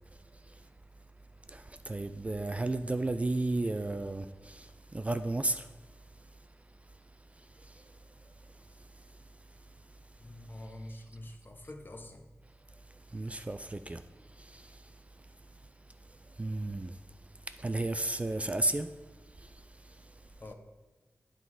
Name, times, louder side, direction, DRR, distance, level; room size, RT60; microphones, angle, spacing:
voice 1, 1.5-4.3 4.9-5.6 13.1-14.0 16.4-16.9 17.6-18.9, right 2 dB, 25° right, 0.3 m, -32 dB
voice 2, 10.2-12.3 20.4-20.5, left 1 dB, 40° left, 0.8 m, -46 dB
9.1 x 3.8 x 4.7 m
wide cardioid pair, 80°, 5 cm